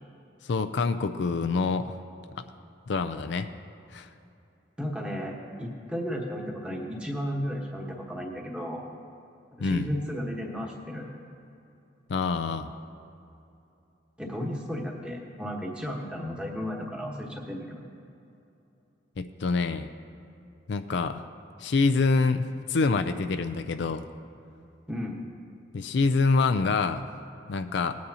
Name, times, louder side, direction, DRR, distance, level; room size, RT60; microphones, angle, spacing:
voice 1, 0.4-1.9 2.9-3.5 3.9-4.1 9.6-9.9 12.1-12.7 19.2-19.9 20.7-21.2 21.6-24.1 25.7-27.1 27.5-28.0, left 4 dB, 65° left, 8 dB, 0.4 m, -26 dB
voice 2, 4.8-8.9 9.5-11.1 14.2-17.8 24.9-25.2, equal, 5° right, -2 dB, 1.2 m, -34 dB
18.5 x 9.4 x 2.8 m, 2.8 s
head